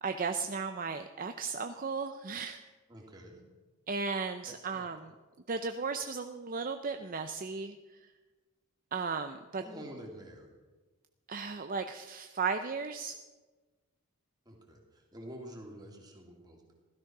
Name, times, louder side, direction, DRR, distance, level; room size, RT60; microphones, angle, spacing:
voice 1, 0.0-2.6 3.9-5.1 5.5-7.7 8.9-9.6 11.3-13.1, right 5 dB, 40° right, 7 dB, 0.6 m, -35 dB
voice 2, 2.9-3.4 4.5-4.9 9.6-10.5 14.5-16.7, equal, 20° right, 0 dB, 2.7 m, -48 dB
16.0 x 13.0 x 6.0 m, 1.3 s
head